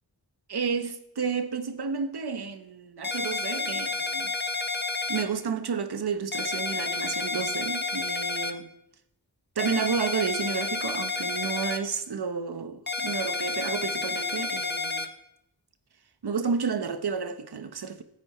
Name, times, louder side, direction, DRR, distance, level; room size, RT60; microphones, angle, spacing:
voice 1, 0.5-4.3 5.1-8.7 9.6-15.1 16.2-18.0, right 6 dB, 90° right, 1.2 m, -31 dB
sound 1, 3.0-5.2 6.3-8.5 9.6-11.8 12.9-15.1, left 4 dB, 25° left, 1.3 m, -30 dB
16.0 x 14.0 x 4.4 m
wide cardioid pair, 100°, 38 cm